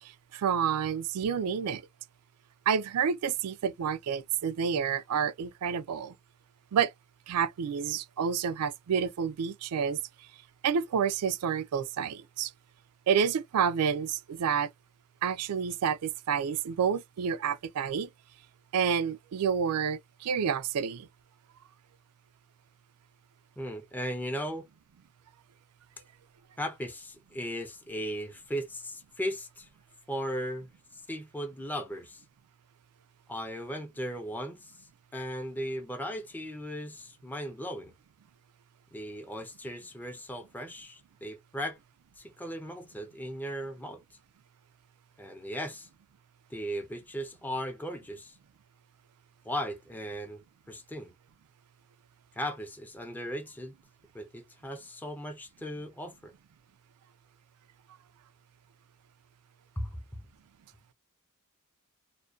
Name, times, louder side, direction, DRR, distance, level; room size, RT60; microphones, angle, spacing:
voice 1, 0.3-1.8 2.7-6.2 6.7-6.9 7.3-10.0 10.6-12.5 13.1-14.7 15.2-18.1 18.7-21.1, right 7 dB, 85° right, 0.4 m, -29 dB
voice 2, 23.6-24.7 26.6-29.7 30.1-32.2 33.3-37.9 38.9-41.8 42.2-44.2 45.2-45.9 46.5-48.4 49.4-51.1 52.4-53.7 54.1-56.3 59.8-60.2, equal, 10° left, 0.4 m, -37 dB
2.5 x 2.1 x 2.3 m
head